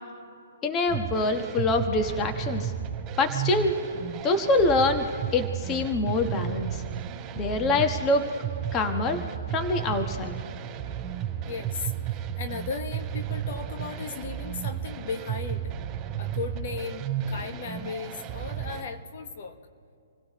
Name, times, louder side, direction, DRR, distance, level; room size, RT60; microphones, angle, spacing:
voice 1, 0.6-2.7 3.2-3.7 4.2-5.1 5.3-6.8 7.4-8.2 8.7-9.2 9.5-10.4, left 2 dB, 25° left, 6 dB, 1.3 m, -25 dB
sound 1, 0.9-18.8, right 9 dB, 15° right, 4.3 m, -33 dB
voice 2, 11.5-15.7 16.2-19.6, left 5 dB, 50° left, 6 dB, 1.4 m, -36 dB
27.5 x 17.0 x 3.1 m, 2.4 s
hypercardioid pair, 135°, 0 cm